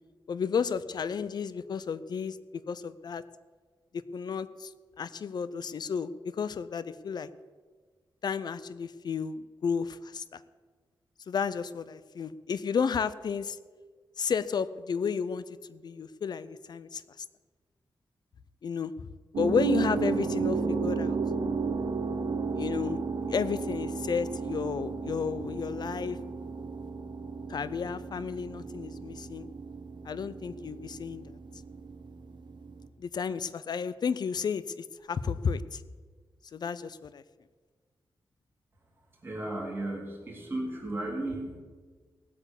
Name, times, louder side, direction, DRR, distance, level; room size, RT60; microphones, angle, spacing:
voice 1, 0.3-3.2 3.9-4.7 5.0-7.3 8.2-10.4 11.3-13.6 14.2-17.2 18.6-19.1 19.4-21.2 22.5-23.0 23.3-26.2 27.5-29.5 30.0-31.3 33.0-35.8 36.5-37.2, left 6 dB, 55° left, 15 dB, 0.6 m, -32 dB
sound 1, 19.3-32.9, right 4 dB, 60° right, 1.2 m, -33 dB
voice 2, 39.2-41.6, right 1 dB, 25° right, -1 dB, 3.5 m, -35 dB
18.0 x 8.3 x 7.1 m, 1.5 s
wide cardioid pair, 175°, 9 cm